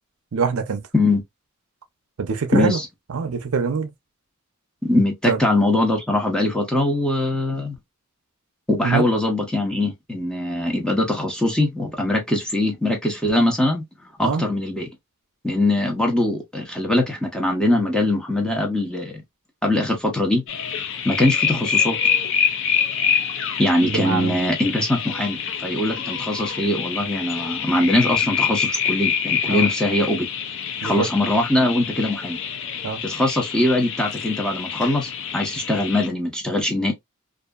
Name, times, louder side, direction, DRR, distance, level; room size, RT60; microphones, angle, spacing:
voice 1, 0.3-0.8 2.2-2.8 3.1-3.9 5.2-5.4 8.8-9.1 14.2-14.5 23.8-24.4 29.5-29.7 30.8-31.1 32.8-33.0, right 5 dB, 70° right, 0.5 m, -24 dB
voice 2, 2.5-2.9 4.8-7.8 8.7-13.8 14.2-14.9 15.4-19.2 19.6-20.4 21.0-22.0 23.6-30.3 30.8-32.4 33.0-36.9, left 1 dB, 5° left, 0.7 m, -22 dB
sound 1, 20.5-36.1, left 7 dB, 60° left, 0.5 m, -26 dB
2.7 x 2.5 x 2.3 m
head